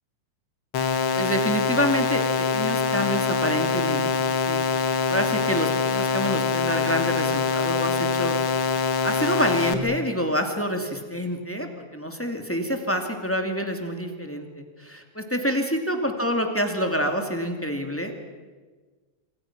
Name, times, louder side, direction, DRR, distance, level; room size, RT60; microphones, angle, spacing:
sound 1, 0.7-9.7, left 5 dB, 50° left, 1.9 m, -24 dB
voice 1, 1.1-4.0 4.3-8.4 9.0-18.3, equal, 5° left, 4 dB, 2.1 m, -27 dB
26.5 x 25.5 x 6.1 m, 1.3 s
omnidirectional pair, 3.4 m